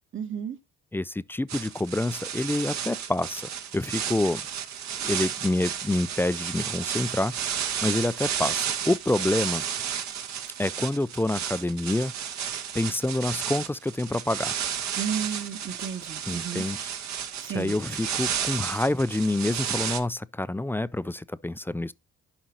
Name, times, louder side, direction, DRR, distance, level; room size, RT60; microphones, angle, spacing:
voice 1, 0.1-0.6 15.0-16.7 17.4-17.7, right 7 dB, 40° right, 1.3 m, -33 dB
voice 2, 0.9-4.4 5.0-9.6 10.6-12.1 12.7-14.5 16.3-16.9 17.5-21.9, left 2 dB, 10° left, 0.3 m, -27 dB
sound 1, 1.5-20.0, right 8 dB, 65° right, 1.2 m, -32 dB
11.5 x 5.1 x 2.9 m
cardioid pair, 90°, 30 cm